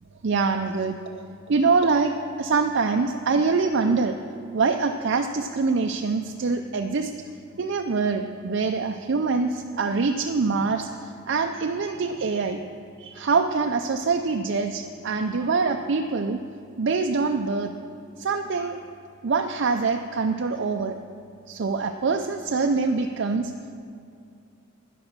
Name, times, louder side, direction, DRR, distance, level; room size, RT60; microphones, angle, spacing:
voice 1, 0.2-4.2 4.5-7.1 7.6-12.6 13.0-16.4 16.8-17.7 18.2-18.8 19.2-21.0 21.5-23.5, right 4 dB, 60° right, 5 dB, 0.5 m, -24 dB
11.0 x 10.5 x 6.5 m, 2.4 s
head